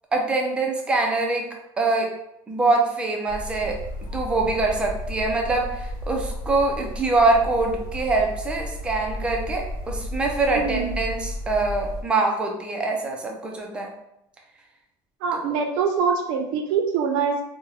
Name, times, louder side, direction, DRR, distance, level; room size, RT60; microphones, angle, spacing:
voice 1, 0.1-1.4 1.8-2.1 2.5-3.8 4.1-13.9, right 3 dB, 10° right, 0 dB, 0.3 m, -24 dB
sound 1, 3.3-12.0, equal, 65° left, 0.9 m, -33 dB
voice 2, 10.5-10.9 15.2-17.4, right 6 dB, 70° right, 3 dB, 0.6 m, -24 dB
2.7 x 2.1 x 3.7 m, 0.82 s
cardioid pair, 180°, 11 cm